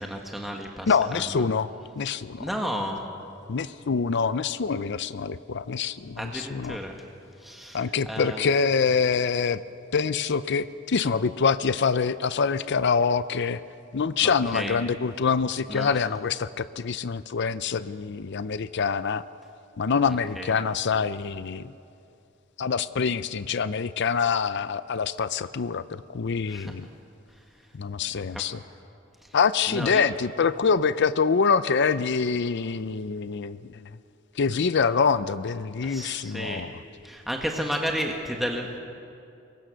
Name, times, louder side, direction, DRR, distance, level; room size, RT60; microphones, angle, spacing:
voice 1, 0.0-1.2 2.4-3.0 6.2-7.0 7.4-8.5 14.2-14.8 15.7-15.9 20.4-20.5 26.5-26.7 28.3-28.4 29.7-30.0 35.8-36.6 37.0-38.8, equal, ahead, 1 dB, 1.5 m, -32 dB
voice 2, 0.9-1.7 2.0-2.5 3.5-6.8 7.7-9.6 9.9-13.6 13.9-19.2 19.8-21.7 22.6-26.9 27.7-28.6 29.3-33.8 34.4-36.7, left 5 dB, 60° left, 14 dB, 0.5 m, -25 dB
23.5 x 22.5 x 6.4 m, 2.6 s
head